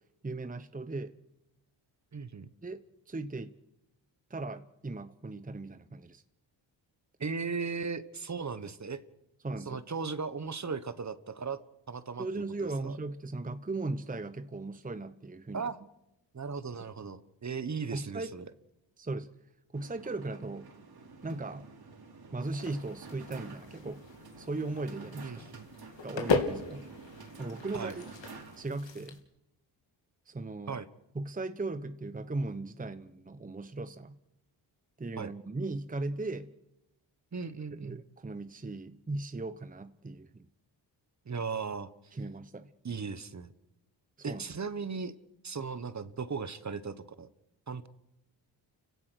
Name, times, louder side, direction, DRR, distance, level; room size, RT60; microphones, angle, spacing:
voice 1, 0.2-1.1 2.6-3.5 4.3-6.2 9.4-9.8 12.2-15.7 17.9-18.3 19.0-19.3 19.7-20.7 21.2-21.7 22.3-24.0 24.4-25.4 26.0-26.9 27.4-28.1 28.6-29.2 30.3-30.8 31.1-34.2 35.0-36.5 37.8-40.5 42.1-42.7 44.3-44.5, right 2 dB, 15° right, 11 dB, 1.0 m, -37 dB
voice 2, 2.1-2.5 7.2-9.0 9.7-11.6 11.9-12.3 12.6-12.9 15.5-15.8 16.3-18.5 25.2-25.7 27.7-27.9 30.7-30.9 35.2-35.3 37.3-38.0 41.2-41.9 42.8-43.5 44.2-45.1 45.4-47.3 47.7-47.9, right 5 dB, 35° right, 14 dB, 1.4 m, -37 dB
sound 1, 19.7-28.7, right 4 dB, 50° right, 4.2 m, -50 dB
sound 2, 22.4-29.2, left 4 dB, 70° left, 3.2 m, -37 dB
30.0 x 17.0 x 6.4 m, 0.92 s
cardioid pair, 65°, 46 cm